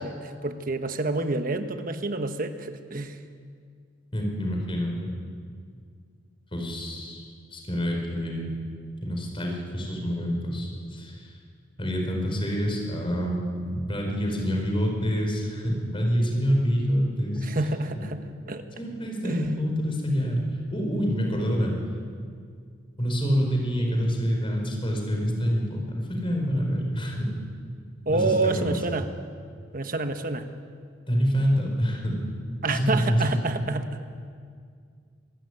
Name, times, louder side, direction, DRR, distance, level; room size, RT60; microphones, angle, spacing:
voice 1, 0.0-3.2 17.4-18.2 18.5-18.6 19.2-19.5 28.1-29.1 29.7-30.5 32.6-34.0, right 2 dB, 50° right, 8 dB, 1.2 m, -28 dB
voice 2, 4.1-5.1 6.5-7.2 7.5-8.5 9.0-11.3 11.8-17.5 18.8-20.4 20.7-21.8 23.0-27.3 28.1-28.8 31.1-32.2 32.7-33.4, equal, 30° left, 1 dB, 4.9 m, -26 dB
25.0 x 13.5 x 10.0 m, 2.1 s
head